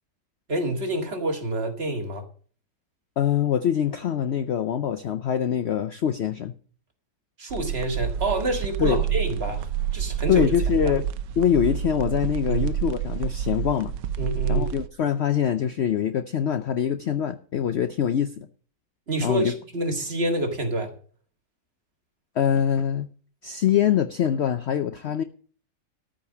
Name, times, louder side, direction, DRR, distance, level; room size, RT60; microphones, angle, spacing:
voice 1, 0.5-2.2 7.4-10.5 10.8-10.9 12.5-12.7 14.2-14.7 19.1-20.9, right 1 dB, 35° right, 1.9 m, -27 dB
voice 2, 3.2-6.5 8.8-9.0 10.3-11.0 11.4-13.9 14.5-18.5 19.2-19.5 22.4-23.1 23.4-25.2, left 9 dB, 75° left, 0.6 m, -24 dB
sound 1, 7.5-14.9, right 9 dB, 85° right, 1.4 m, -28 dB
13.5 x 5.2 x 8.1 m
omnidirectional pair, 1.9 m